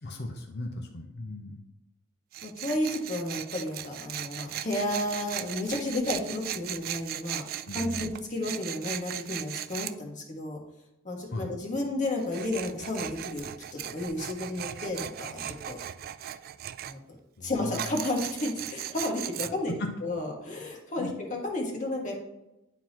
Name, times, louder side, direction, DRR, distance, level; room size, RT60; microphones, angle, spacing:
voice 1, 0.0-1.6 7.7-8.1 11.3-11.5 17.4-17.9 19.7-19.9 21.0-21.1, left 2 dB, 55° left, 3 dB, 0.8 m, -37 dB
Tools, 2.3-10.0 12.2-16.9 17.7-19.5, right 11 dB, 45° right, 0.3 m, -38 dB
voice 2, 2.4-7.5 7.7-10.6 11.0-15.8 16.8-17.0 17.4-19.7 20.0-22.2, left 1 dB, 40° left, -1 dB, 1.6 m, -32 dB
11.0 x 4.0 x 3.0 m, 0.91 s
head